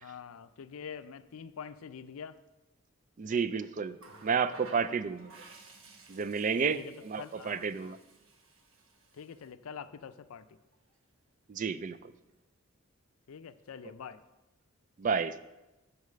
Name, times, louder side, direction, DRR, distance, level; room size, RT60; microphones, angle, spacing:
voice 1, 0.0-2.4 4.7-5.0 6.5-8.0 9.1-10.5 13.3-14.2, left 6 dB, 80° left, 13 dB, 0.4 m, -46 dB
voice 2, 3.2-5.4 6.1-8.0 11.5-12.1 15.0-15.4, right 5 dB, 35° right, 14 dB, 0.3 m, -31 dB
Water tap faucet, 4.0-9.5 10.7-10.9, right 3 dB, 70° right, 1.1 m, -55 dB
8.1 x 4.8 x 6.6 m, 1.0 s
head